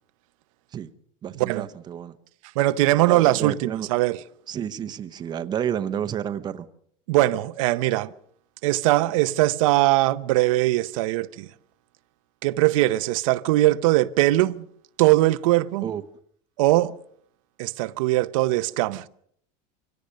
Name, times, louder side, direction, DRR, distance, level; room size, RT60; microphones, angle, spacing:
voice 1, 1.2-2.2 3.1-3.9 4.5-6.7 15.8-16.0, right 9 dB, 25° right, 0.9 m, -30 dB
voice 2, 2.6-4.2 7.1-8.1 8.6-11.5 12.4-14.6 15.0-15.8 16.6-17.0 17.6-19.1, right 17 dB, 85° right, 0.7 m, -21 dB
24.0 x 17.0 x 6.5 m
cardioid pair, 155°, 17 cm